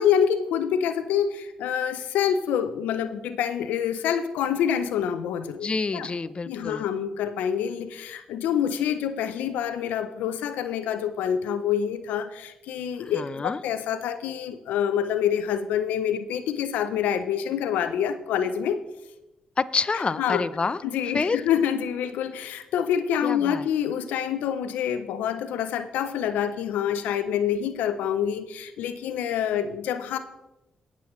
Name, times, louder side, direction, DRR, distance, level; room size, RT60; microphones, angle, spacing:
voice 1, 0.0-5.7 5.9-6.1 6.5-18.8 19.9-20.4 20.8-30.2, left 8 dB, 85° left, 11 dB, 0.5 m, -26 dB
voice 2, 5.6-6.8 13.0-13.6 19.6-20.8 21.1-21.4 23.2-23.7, left 4 dB, 40° left, 14 dB, 0.6 m, -27 dB
18.5 x 7.4 x 3.1 m, 0.95 s
supercardioid pair, 50°, 3 cm